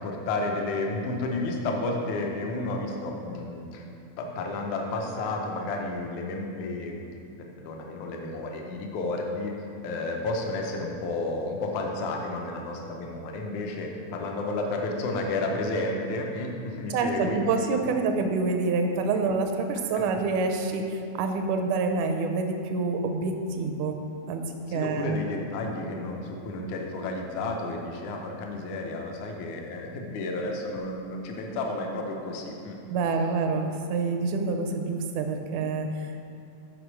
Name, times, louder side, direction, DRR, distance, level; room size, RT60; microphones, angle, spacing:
voice 1, 0.0-3.9 4.2-9.6 9.8-17.4 19.9-20.0 24.7-32.8, left 2 dB, 80° left, 1 dB, 2.2 m, -32 dB
voice 2, 16.9-24.0 24.3-25.2 32.9-36.3, right 4 dB, 85° right, 5 dB, 2.1 m, -27 dB
6.6 x 5.1 x 6.0 m, 2.5 s
omnidirectional pair, 3.4 m